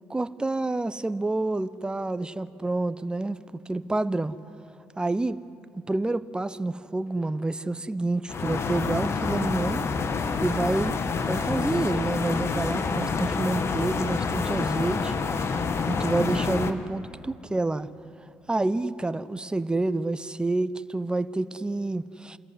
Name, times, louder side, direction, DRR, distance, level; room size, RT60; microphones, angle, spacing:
voice 1, 0.1-3.4 3.7-4.4 5.0-5.4 5.7-9.8 10.4-11.0 11.2-15.1 15.9-17.9 18.5-22.4, right 2 dB, 15° right, 13 dB, 0.8 m, -28 dB
sound 1, 8.3-16.7, left 5 dB, 50° left, 1.4 m, -28 dB
26.5 x 14.5 x 9.7 m, 2.7 s
hypercardioid pair, 55°, 6 cm